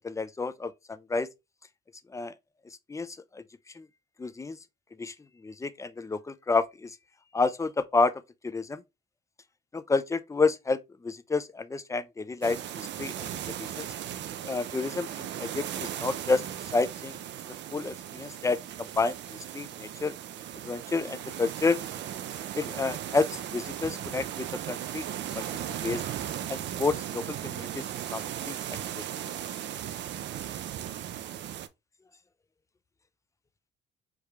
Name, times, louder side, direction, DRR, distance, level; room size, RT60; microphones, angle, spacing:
voice 1, 0.0-1.3 2.1-2.3 2.9-3.4 3.8-3.9 4.2-4.6 5.0-5.1 5.4-6.9 7.3-8.1 8.4-8.8 9.7-13.1 13.6-13.9 14.4-16.4 16.7-17.2 17.7-20.2 20.6-21.8 22.5-26.0 26.5-27.8 28.1-29.0, left 3 dB, 15° left, 0.4 m, -30 dB
sound 1, 12.4-31.7, right 11 dB, 65° right, 0.4 m, -37 dB
4.7 x 2.3 x 3.1 m
cardioid pair, 90°, 20 cm